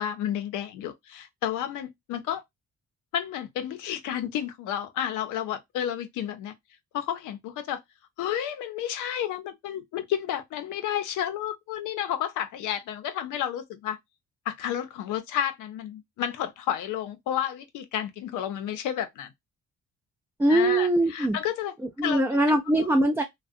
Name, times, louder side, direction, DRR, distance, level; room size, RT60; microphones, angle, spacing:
voice 1, 0.0-2.4 3.1-6.5 6.9-7.8 8.2-14.0 14.5-19.3 20.5-21.7 22.0-22.4 22.8-22.9, left 10 dB, 85° left, 0.6 m, -31 dB
voice 2, 20.4-21.4 22.0-23.2, right 1 dB, 10° right, 0.4 m, -22 dB
2.4 x 2.1 x 2.4 m
cardioid pair, 90°, 30 cm